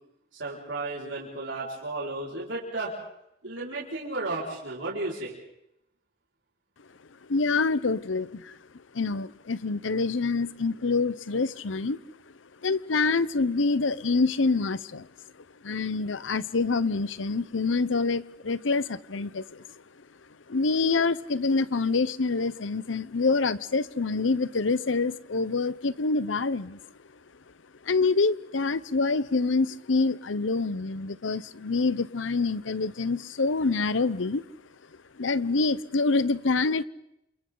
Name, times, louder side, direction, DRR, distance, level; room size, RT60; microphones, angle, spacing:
voice 1, 0.3-2.9 3.4-5.4, right 2 dB, 75° right, -5 dB, 5.2 m, -33 dB
voice 2, 7.3-8.6 8.9-12.0 12.6-15.1 15.6-19.6 20.5-26.8 27.8-34.5 35.2-36.8, left 3 dB, 85° left, 17 dB, 0.8 m, -26 dB
28.0 x 28.0 x 3.9 m, 0.81 s
head